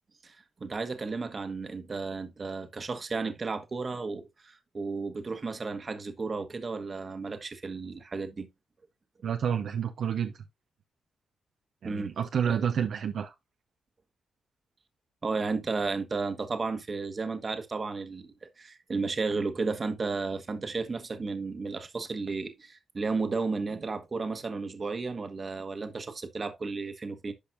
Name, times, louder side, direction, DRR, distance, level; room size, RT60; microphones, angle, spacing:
voice 1, 0.2-8.5 11.8-12.1 12.5-12.6 15.2-27.3, right 4 dB, 40° right, 1.2 m, -33 dB
voice 2, 9.2-10.3 11.8-13.3, right 8 dB, 70° right, 0.7 m, -29 dB
10.5 x 5.2 x 2.5 m
cardioid pair, 70°, 0 cm